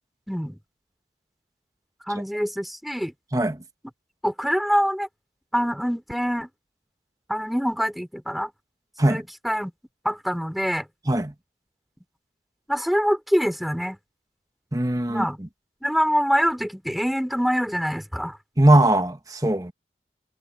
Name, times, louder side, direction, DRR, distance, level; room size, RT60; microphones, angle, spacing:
voice 1, 0.3-0.6 2.1-3.1 4.2-5.1 5.5-6.5 7.3-8.5 9.0-9.7 10.0-10.9 12.7-14.0 15.1-15.4 15.8-18.4, equal, ahead, 4.9 m, -25 dB
voice 2, 14.7-15.5 18.6-19.7, right 1 dB, 20° right, 1.2 m, -20 dB
head